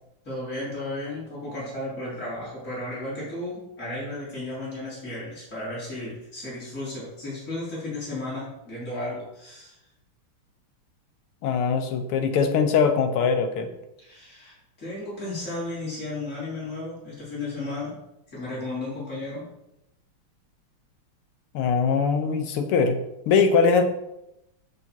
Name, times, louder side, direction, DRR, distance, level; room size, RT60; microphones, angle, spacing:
voice 1, 0.2-9.8 14.0-17.9 18.3-19.5, left 2 dB, 35° left, -8 dB, 4.1 m, -34 dB
voice 2, 11.4-13.7 21.5-23.0 23.3-23.8, left 5 dB, 85° left, 7 dB, 1.8 m, -21 dB
7.2 x 6.9 x 4.5 m, 0.86 s
omnidirectional pair, 2.4 m